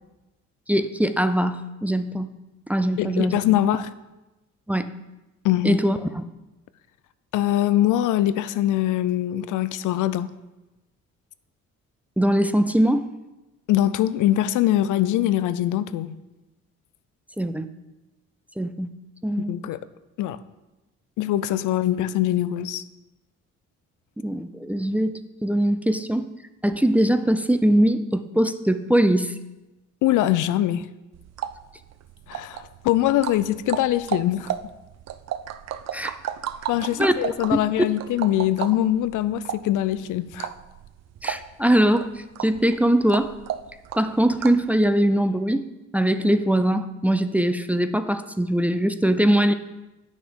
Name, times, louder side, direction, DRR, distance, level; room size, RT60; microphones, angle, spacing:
voice 1, 0.7-2.3 2.7-3.4 4.7-4.9 5.6-6.2 12.2-13.1 17.4-17.6 18.6-18.9 19.2-19.5 24.2-26.3 26.6-29.3 35.9-36.1 37.0-37.1 37.5-37.6 41.2-43.3 43.9-45.7 45.9-49.5, right 1 dB, 5° right, 10 dB, 0.4 m, -21 dB
voice 2, 3.0-3.9 5.4-5.8 7.3-10.3 13.7-16.2 19.4-19.8 20.2-20.4 21.2-22.8 30.0-30.9 32.3-34.5 36.7-40.5, left 13 dB, 80° left, 14 dB, 0.5 m, -23 dB
sound 1, 31.1-44.7, right 10 dB, 60° right, 0.5 m, -34 dB
9.1 x 6.3 x 5.2 m, 1.0 s
cardioid pair, 90°, 30 cm